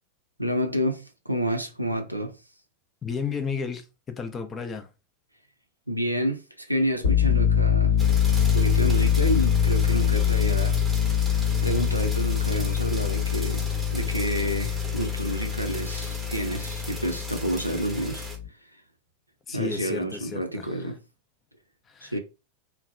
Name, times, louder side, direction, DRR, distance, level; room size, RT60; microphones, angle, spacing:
voice 1, 0.4-2.3 5.9-8.0 8.5-10.8 11.6-13.6 13.9-18.3 19.5-21.0 22.0-22.2, equal, 90° right, 0.4 m, -29 dB
voice 2, 3.0-4.9 19.5-20.9 21.9-22.2, left 5 dB, 20° left, 0.4 m, -33 dB
sound 1, 7.0-18.5, left 8 dB, 65° left, 1.0 m, -24 dB
sound 2, 8.0-18.4, right 1 dB, 5° right, 0.8 m, -39 dB
2.6 x 2.2 x 2.4 m
figure-of-eight pair, 90°, 0 cm